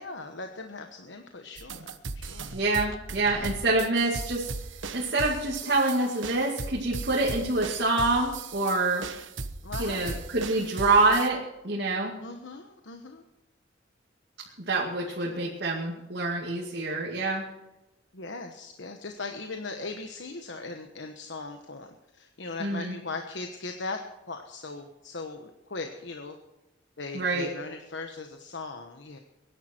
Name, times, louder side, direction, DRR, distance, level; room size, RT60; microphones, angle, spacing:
voice 1, 0.0-2.5 9.6-10.2 12.2-13.2 15.3-15.5 18.1-24.0 24.3-26.4 27.0-29.2, left 3 dB, 70° left, 5 dB, 1.2 m, -39 dB
sound 1, 1.6-11.3, right 3 dB, 85° right, 1.1 m, -38 dB
voice 2, 2.5-4.5 4.9-9.1 9.8-12.1 14.7-17.5 22.6-23.0 27.1-27.5, right 2 dB, 60° right, -3 dB, 2.3 m, -26 dB
23.0 x 11.0 x 4.5 m, 0.99 s
head